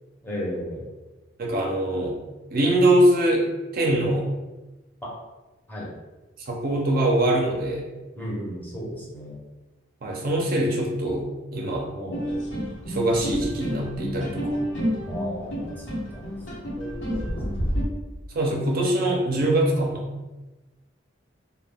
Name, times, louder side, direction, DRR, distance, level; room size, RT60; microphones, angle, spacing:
voice 1, 0.2-0.9 5.0-5.1 5.7-5.9 8.1-9.4 11.9-12.3 15.1-16.2 16.6-17.3 17.6-17.7, equal, 10° left, -5 dB, 0.6 m, -35 dB
voice 2, 1.4-2.2 2.5-3.4 3.7-4.3 6.5-7.8 10.0-11.3 11.5-11.9 12.8-14.6 18.3-20.1, right 1 dB, 50° right, -1 dB, 0.5 m, -23 dB
sound 1, 12.1-17.8, equal, 85° left, 0.9 m, -29 dB
2.2 x 2.1 x 3.3 m, 1.1 s
head